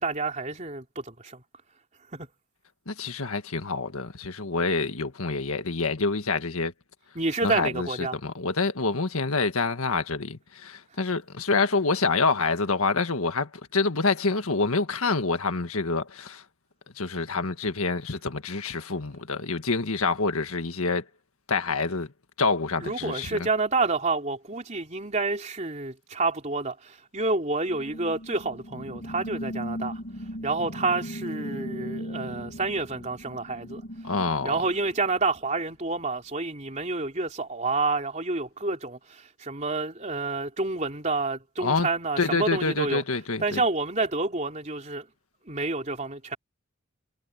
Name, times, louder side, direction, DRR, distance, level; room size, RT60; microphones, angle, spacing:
voice 1, 0.0-1.4 2.1-2.3 7.2-8.1 22.8-30.0 30.4-33.8 34.4-43.0 43.4-45.1 45.5-46.4, right 3 dB, 35° right, 3.4 m, -29 dB
voice 2, 2.9-6.7 7.4-16.4 17.0-21.0 21.5-22.1 22.4-23.5 34.0-34.6 41.6-41.9 42.2-43.6, left 3 dB, 80° left, 1.7 m, -27 dB
sound 1, 27.7-35.5, equal, 55° left, 2.9 m, -38 dB
head